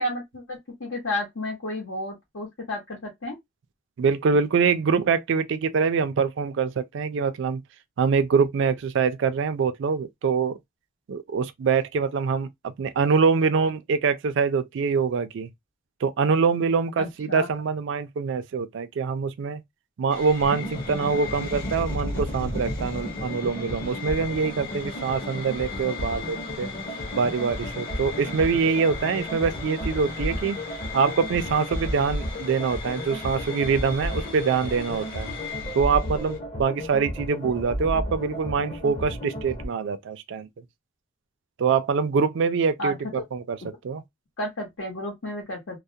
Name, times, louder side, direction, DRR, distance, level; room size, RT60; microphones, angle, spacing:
voice 1, 0.0-3.4 17.0-17.5 42.8-43.2 44.4-45.8, left 1 dB, 90° left, 0.9 m, -32 dB
voice 2, 4.0-7.6 8.0-10.6 11.1-15.5 16.0-19.6 20.0-26.7 27.1-30.6 30.9-35.3 35.7-40.5 41.6-43.0 43.3-43.6 43.8-44.0, right 5 dB, 65° right, 0.4 m, -24 dB
sound 1, 20.1-36.4, left 4 dB, 50° left, 1.0 m, -37 dB
sound 2, 20.4-39.7, equal, 35° left, 0.6 m, -34 dB
2.3 x 2.1 x 2.6 m
head